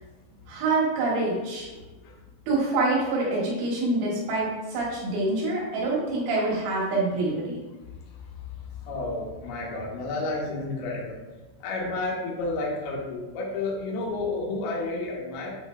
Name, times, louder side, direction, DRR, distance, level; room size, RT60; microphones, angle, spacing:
voice 1, 0.5-1.7 2.5-7.6, right 2 dB, 75° right, -5 dB, 4.2 m, -26 dB
voice 2, 1.7-2.1 8.8-11.2 11.6-15.6, left 2 dB, 70° left, -3 dB, 2.7 m, -31 dB
9.3 x 5.8 x 2.2 m, 1.1 s
omnidirectional pair, 5.7 m